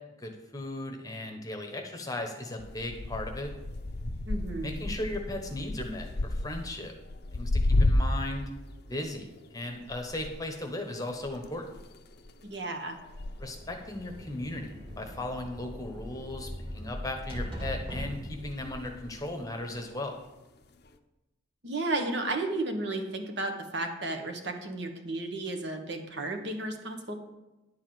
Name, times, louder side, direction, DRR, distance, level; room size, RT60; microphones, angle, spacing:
voice 1, 0.2-3.5 4.6-6.9 7.3-8.5 8.9-11.6 13.4-14.7 15.0-20.2, left 1 dB, 20° left, 3 dB, 1.0 m, -37 dB
sound 1, 2.6-8.4 8.7-15.8 16.0-16.8 17.5-19.3 19.8-20.2 20.9-21.0, left 2 dB, 55° left, 0.7 m, -33 dB
voice 2, 4.3-4.7 12.4-13.0 21.6-27.2, right 2 dB, 60° right, 5 dB, 1.4 m, -33 dB
sound 2, 13.2-19.9, equal, 25° right, 2.4 m, -41 dB
11.0 x 4.7 x 7.6 m, 1.1 s
head